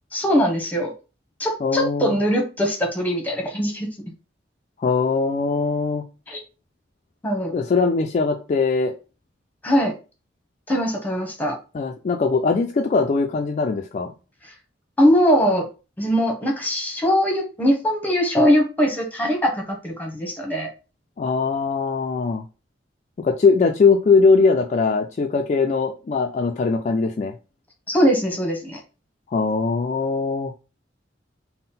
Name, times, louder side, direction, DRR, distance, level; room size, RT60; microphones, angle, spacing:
voice 1, 0.1-0.9 1.4-3.9 6.3-6.4 7.2-7.5 9.6-9.9 10.7-11.6 15.0-15.7 16.0-20.7 27.9-28.8, equal, 10° left, 2 dB, 0.9 m, -21 dB
voice 2, 1.6-2.2 4.8-6.0 7.5-8.9 11.7-14.1 21.2-22.4 23.2-27.3 29.3-30.5, left 4 dB, 40° left, 3 dB, 0.3 m, -21 dB
3.7 x 2.1 x 4.0 m, 0.32 s
head